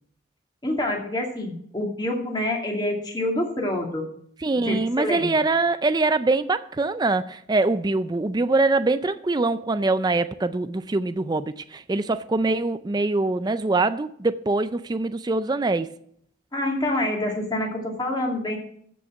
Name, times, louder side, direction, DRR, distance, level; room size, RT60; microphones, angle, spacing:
voice 1, 0.6-4.1 4.5-5.3 16.5-18.6, left 1 dB, 20° left, 2.4 m, -27 dB
voice 2, 4.4-15.9, right 3 dB, 20° right, 0.4 m, -23 dB
14.0 x 5.4 x 7.5 m
head